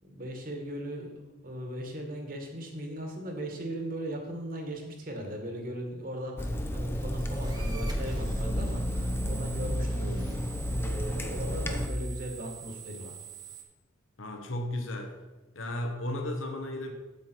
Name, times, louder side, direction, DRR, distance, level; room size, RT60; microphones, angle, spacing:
voice 1, 0.0-10.4 10.7-13.2, right 1 dB, 45° right, 2 dB, 1.7 m, -38 dB
Water tap faucet / Sink (filling or washing), 6.4-11.9, equal, 10° left, 0.6 m, -31 dB
sound 1, 6.9-13.6, right 8 dB, 20° right, 1.1 m, -47 dB
voice 2, 14.2-15.2 15.5-16.9, left 1 dB, 80° left, 4 dB, 1.3 m, -34 dB
8.5 x 7.8 x 4.6 m, 1.2 s
head